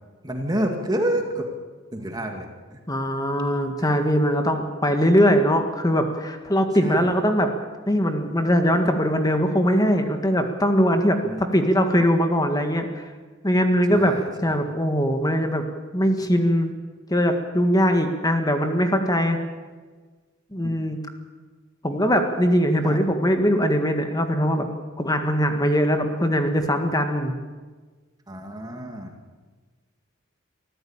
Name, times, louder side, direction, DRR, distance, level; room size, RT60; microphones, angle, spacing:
voice 1, 0.2-1.5 1.9-2.5 6.8-7.1 11.2-11.4 13.9-14.6 22.8-23.0 28.3-29.1, right 1 dB, 20° right, 3 dB, 2.1 m, -28 dB
voice 2, 2.9-7.5 7.9-12.9 13.4-14.2 14.4-15.6 15.9-16.7 17.1-19.4 20.5-21.0 21.8-24.7 25.0-27.3, equal, 20° left, 6 dB, 1.8 m, -21 dB
25.0 x 14.5 x 8.8 m, 1.4 s
head